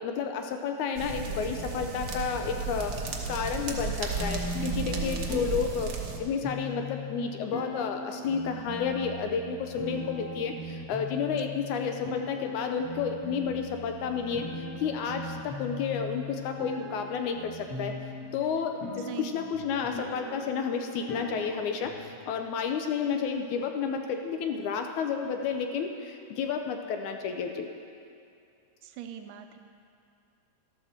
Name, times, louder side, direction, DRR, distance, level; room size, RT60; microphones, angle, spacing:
voice 1, 0.0-3.0 3.3-14.5 14.8-17.9 18.3-27.7, left 6 dB, 80° left, 4 dB, 2.0 m, -31 dB
sound 1, 1.0-6.2, right 4 dB, 70° right, 1.1 m, -34 dB
sound 2, 4.2-22.2, left 2 dB, 45° left, 1.3 m, -39 dB
voice 2, 28.8-29.6, right 10 dB, 85° right, 6 dB, 2.2 m, -41 dB
13.0 x 12.5 x 4.3 m, 2.5 s
omnidirectional pair, 3.7 m